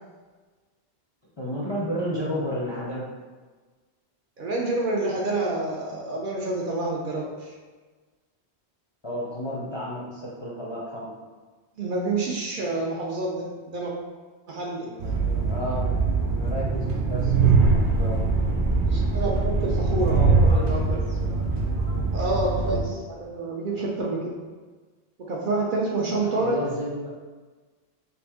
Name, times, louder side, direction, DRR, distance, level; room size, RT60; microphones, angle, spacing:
voice 1, 1.4-3.1 9.0-11.1 14.8-18.2 19.8-21.3 21.7-22.1 23.7-23.9 26.2-27.1, equal, 35° left, -7 dB, 0.5 m, -33 dB
voice 2, 4.4-7.5 11.8-13.9 14.5-14.9 18.9-21.0 22.1-24.3 25.3-26.6, right 2 dB, 60° right, -3 dB, 0.6 m, -28 dB
Train, 15.0-22.8, right 3 dB, 80° right, 0.9 m, -22 dB
3.2 x 2.5 x 3.5 m, 1.4 s
omnidirectional pair, 1.1 m